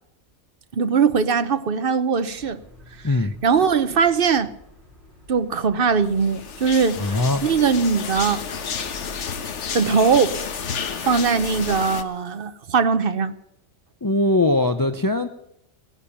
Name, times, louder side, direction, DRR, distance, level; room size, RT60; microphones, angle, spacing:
voice 1, 0.7-2.6 3.4-4.5 5.3-8.4 9.7-10.4 11.0-13.3, right 5 dB, 50° right, 1.0 m, -20 dB
sound 1, 2.3-10.2, left 1 dB, 35° right, 5.3 m, -49 dB
sound 2, 6.2-12.0, left 6 dB, 70° left, 1.3 m, -31 dB
voice 2, 7.0-7.4 14.0-15.3, left 2 dB, 20° left, 0.6 m, -20 dB
17.0 x 10.5 x 7.1 m
omnidirectional pair, 1.3 m